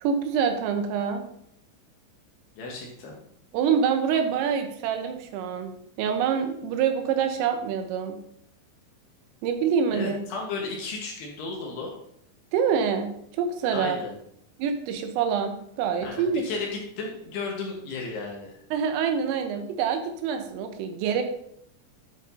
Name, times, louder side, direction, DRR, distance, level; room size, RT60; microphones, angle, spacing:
voice 1, 0.0-1.2 3.5-5.7 6.0-8.2 9.4-10.2 12.5-13.1 13.4-14.0 14.6-16.4 18.7-21.2, right 7 dB, 90° right, 6 dB, 3.4 m, -26 dB
voice 2, 2.6-3.2 9.9-11.9 13.7-14.2 16.0-18.6, left 3 dB, 70° left, -1 dB, 2.8 m, -34 dB
11.0 x 6.8 x 2.7 m, 0.71 s
omnidirectional pair, 5.8 m